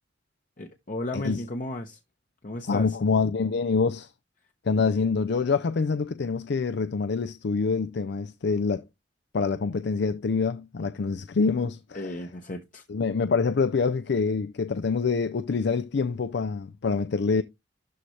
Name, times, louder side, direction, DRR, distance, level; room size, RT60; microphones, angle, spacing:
voice 1, 0.6-2.0 2.4-3.0 11.9-12.8, left 1 dB, 45° left, 1.0 m, -34 dB
voice 2, 1.1-1.4 2.6-4.1 4.6-8.8 9.3-12.2 12.9-17.4, left 4 dB, 65° left, 0.5 m, -26 dB
12.5 x 4.2 x 3.3 m
head